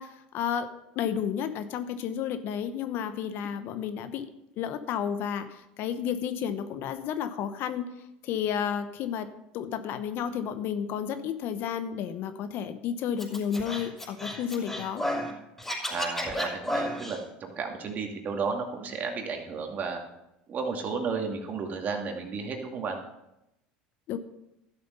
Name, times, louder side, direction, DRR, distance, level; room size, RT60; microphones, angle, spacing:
voice 1, 0.0-4.3 4.6-7.9 8.2-15.0 24.1-24.2, left 8 dB, 60° left, 11 dB, 1.0 m, -32 dB
Scratching (performance technique), 13.2-15.3 15.6-17.2, left 1 dB, 10° left, 5.2 m, -32 dB
voice 2, 15.9-20.0 20.5-23.0, right 5 dB, 40° right, 3 dB, 2.3 m, -33 dB
12.5 x 7.6 x 5.5 m, 0.88 s
supercardioid pair, 95°, 4 cm